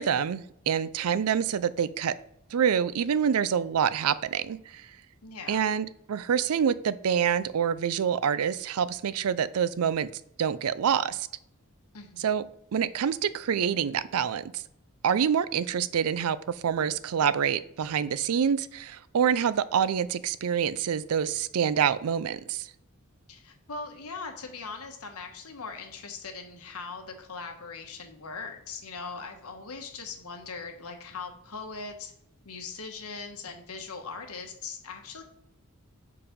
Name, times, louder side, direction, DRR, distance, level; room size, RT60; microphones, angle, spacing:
voice 1, 0.0-2.2 2.5-4.8 5.5-10.1 10.4-11.3 12.2-12.4 12.7-14.6 15.0-22.7, right 8 dB, 75° right, 16 dB, 0.4 m, -26 dB
voice 2, 5.2-5.6 11.9-12.3 23.3-32.1 32.4-35.2, left 4 dB, 80° left, 5 dB, 1.2 m, -40 dB
5.3 x 4.8 x 5.1 m, 0.79 s
head